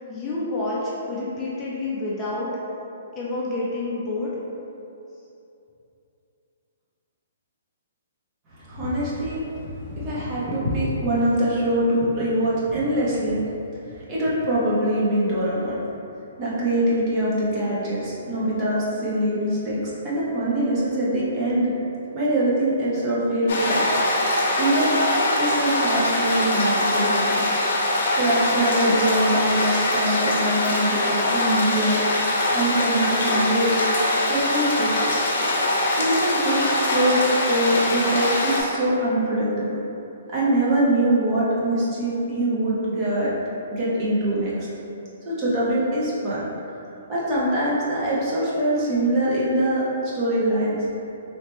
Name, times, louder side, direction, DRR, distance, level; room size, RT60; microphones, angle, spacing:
voice 1, 0.1-2.5 3.1-4.3, left 2 dB, 20° left, -7 dB, 0.5 m, -28 dB
voice 2, 8.5-13.4 13.9-15.8 16.4-21.7 22.1-24.0 24.6-24.9 25.4-27.4 28.2-32.0 32.5-33.9 34.3-35.1 35.9-39.7 40.3-43.3 43.7-44.7 45.3-46.4 47.1-50.8, right 1 dB, 30° right, -8 dB, 0.9 m, -23 dB
sound 1, 23.5-38.6, left 1 dB, 65° left, 0.7 m, -23 dB
3.3 x 2.8 x 3.1 m, 2.8 s
hypercardioid pair, 150°, 0 cm